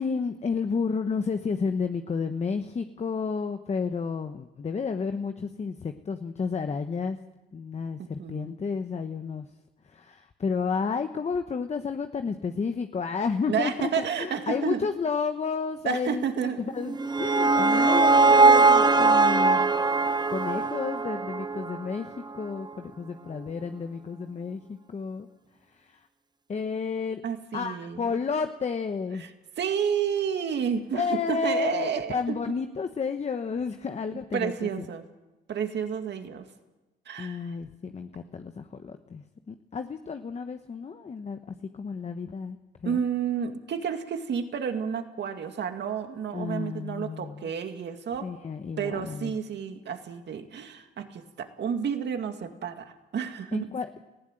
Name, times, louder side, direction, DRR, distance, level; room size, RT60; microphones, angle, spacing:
voice 1, 0.0-7.2 7.5-9.5 9.9-19.7 20.3-25.3 25.9-26.0 26.5-27.2 27.5-29.2 30.9-34.9 37.2-43.0 46.3-47.5 48.2-49.3 53.5-54.0, left 5 dB, 35° left, 8 dB, 1.0 m, -31 dB
voice 2, 8.0-8.5 13.5-14.9 15.8-16.7 17.7-17.9 27.2-28.1 29.2-29.3 29.6-32.2 34.3-35.0 35.5-36.4 37.1-37.4 42.8-48.3 48.8-53.7, right 7 dB, 60° right, 6 dB, 2.2 m, -31 dB
sound 1, 16.8-21.9, right 3 dB, 20° right, 0.7 m, -20 dB
18.5 x 15.5 x 9.0 m, 1.1 s
cardioid pair, 90°, 20 cm